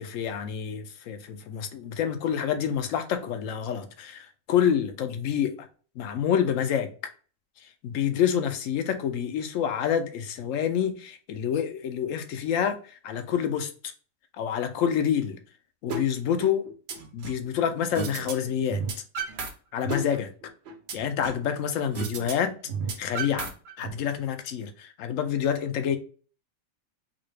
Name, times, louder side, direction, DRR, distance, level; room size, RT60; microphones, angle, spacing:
voice 1, 0.0-5.5 6.0-6.9 7.8-13.7 14.4-15.4 15.8-16.6 17.1-18.8 19.7-20.3 20.9-22.6 23.0-26.0, left 8 dB, 75° left, 0.9 m, -27 dB
sound 1, 15.9-16.0 16.4-17.4 17.9-18.3 18.6-19.5 19.8-21.5 21.9-22.3 22.6-23.9, right 4 dB, 60° right, 0.9 m, -32 dB
4.0 x 2.3 x 3.2 m
omnidirectional pair, 1.4 m